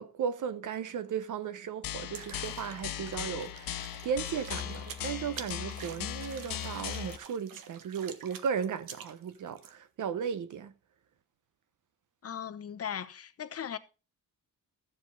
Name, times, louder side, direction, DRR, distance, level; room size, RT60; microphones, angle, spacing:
voice 1, 0.0-10.7, right 7 dB, 65° right, 1.0 m, -36 dB
sound 1, 1.8-7.2, left 11 dB, 85° left, 0.9 m, -38 dB
sound 2, 2.1-9.7, right 8 dB, 90° right, 1.2 m, -48 dB
voice 2, 12.2-13.8, left 8 dB, 45° left, 0.9 m, -38 dB
14.0 x 7.4 x 3.9 m
cardioid pair, 125°, 33 cm